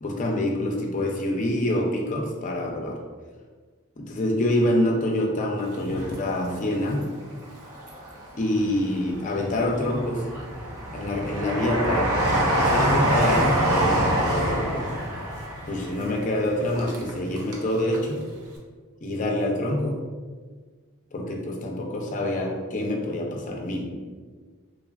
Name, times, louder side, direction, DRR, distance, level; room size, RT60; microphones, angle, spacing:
voice 1, 0.0-3.0 4.0-7.0 8.4-10.2 10.9-14.9 15.7-18.2 19.0-20.0 21.1-23.8, left 1 dB, 35° left, 1 dB, 0.4 m, -26 dB
Train, 5.7-7.0 7.4-8.4 8.9-17.7 17.9-18.0, right 1 dB, 90° right, 0.5 m, -26 dB
3.1 x 2.3 x 2.2 m, 1.5 s
head